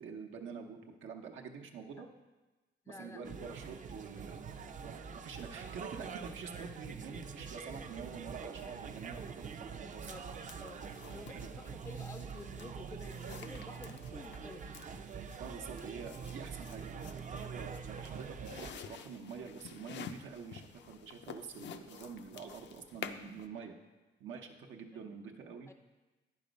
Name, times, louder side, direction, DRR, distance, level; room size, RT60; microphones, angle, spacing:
voice 1, 0.0-2.1 2.9-4.5 4.8-4.9 5.2-10.1 10.7-11.5 15.4-23.8 24.2-25.7, right 6 dB, 80° right, 2 dB, 0.8 m, -47 dB
voice 2, 2.9-3.5 10.1-10.2 10.6-15.0 25.1-25.2 25.7-25.8, left 2 dB, 15° left, 6 dB, 0.4 m, -51 dB
sound 1, 3.2-18.7, right 6 dB, 40° right, 0.5 m, -45 dB
sound 2, 10.5-23.5, left 8 dB, 70° left, 0.5 m, -51 dB
9.5 x 5.7 x 5.1 m, 1.2 s
cardioid pair, 115°, 19 cm